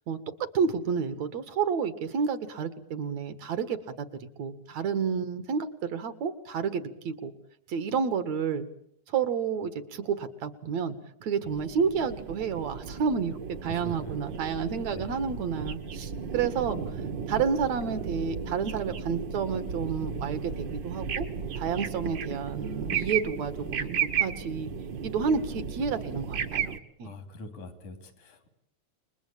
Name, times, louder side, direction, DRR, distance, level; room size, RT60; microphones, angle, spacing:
voice 1, 0.5-4.1 4.4-7.3 7.7-8.7 9.1-10.9 11.2-16.8 17.3-21.3 21.6-24.7 25.0-26.7 27.0-27.1, right 6 dB, 65° right, 11 dB, 3.0 m, -30 dB
sound 1, 11.5-26.8, right 7 dB, 45° right, 1.7 m, -34 dB
voice 2, 13.7-14.1 14.9-15.2 27.0-28.5, left 2 dB, 80° left, 8 dB, 4.6 m, -43 dB
30.0 x 21.5 x 8.8 m, 0.69 s
omnidirectional pair, 3.4 m